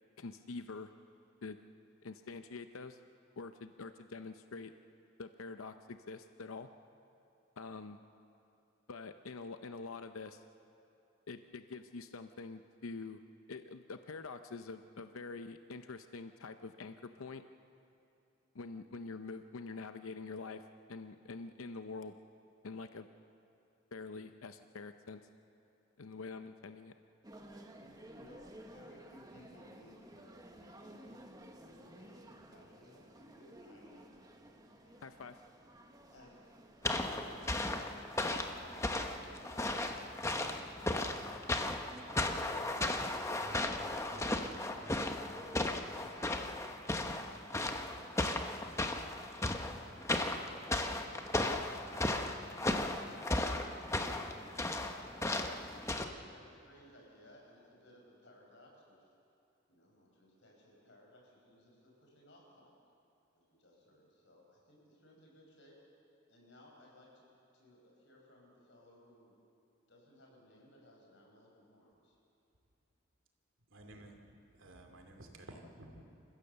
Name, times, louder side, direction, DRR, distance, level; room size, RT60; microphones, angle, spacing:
voice 1, 0.2-0.9 1.4-1.6 2.0-3.0 3.4-4.7 5.2-6.7 7.6-8.0 8.9-10.4 11.3-13.2 13.5-17.4 18.5-22.2 22.6-23.1 23.9-25.3 26.0-26.9 35.0-35.4, left 4 dB, 90° left, 9 dB, 0.7 m, -46 dB
sound 1, 27.2-46.6, right 1 dB, 20° right, 1.2 m, -55 dB
voice 2, 28.1-31.2 31.6-34.3 34.8-35.0 36.1-36.5 37.1-40.2 40.7-41.3 49.7-50.5 54.1-55.5 55.9-58.9 59.7-62.7 63.3-65.7 66.3-67.2 67.5-69.3 69.9-72.2, left 1 dB, 60° left, -1 dB, 5.7 m, -61 dB
sound 2, 36.8-56.1, left 2 dB, 15° left, 0.9 m, -36 dB
voice 3, 73.7-74.2 74.5-76.1, right 1 dB, 75° right, 3 dB, 2.6 m, -53 dB
27.5 x 15.5 x 6.9 m, 2.7 s
head